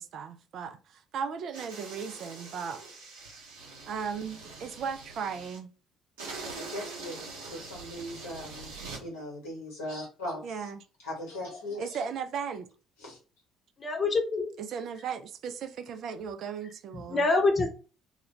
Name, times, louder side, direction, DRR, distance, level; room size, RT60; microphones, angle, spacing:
voice 1, 0.0-2.8 3.9-5.7 10.4-10.8 11.8-12.7 14.6-17.3, right 6 dB, 55° right, 0.3 m, -36 dB
sound 1, 1.5-5.6 6.2-9.0, right 4 dB, 70° right, 0.8 m, -43 dB
voice 2, 6.4-8.7 9.0-10.7 11.0-12.0 13.0-13.2, left 1 dB, 75° left, 0.9 m, -39 dB
voice 3, 13.8-14.5 16.9-17.7, left 3 dB, 30° left, 0.7 m, -25 dB
2.3 x 2.2 x 2.9 m
figure-of-eight pair, 50°, 0 cm